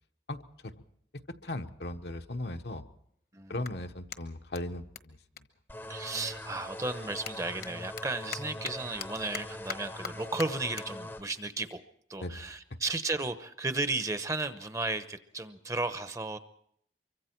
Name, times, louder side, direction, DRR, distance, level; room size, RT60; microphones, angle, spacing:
voice 1, 0.3-0.8 1.1-2.8 3.5-5.5 12.2-12.8, left 1 dB, 70° left, 6 dB, 1.1 m, -38 dB
Clapping, 2.8-6.3 6.6-13.3, left 7 dB, 55° left, 1.2 m, -46 dB
sound 1, 5.7-11.2, left 1 dB, 10° left, 0.8 m, -42 dB
voice 2, 5.9-11.8 12.1-16.4, right 3 dB, 20° right, 10 dB, 0.9 m, -34 dB
25.0 x 23.5 x 4.6 m, 0.70 s
head